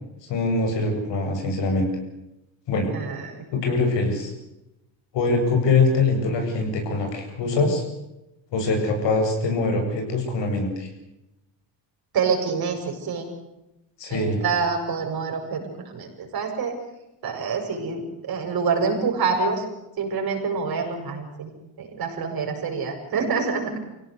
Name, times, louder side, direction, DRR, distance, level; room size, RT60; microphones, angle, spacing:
voice 1, 0.3-1.9 2.7-2.9 3.5-4.3 5.1-7.8 8.5-10.9 14.0-14.4, left 3 dB, 70° left, 3 dB, 7.9 m, -23 dB
voice 2, 2.9-3.4 12.1-13.3 14.1-16.8 17.2-19.6 20.0-21.5 21.8-23.8, right 5 dB, 50° right, 2 dB, 7.6 m, -26 dB
25.0 x 17.5 x 8.3 m, 0.91 s
cardioid pair, 125°, 44 cm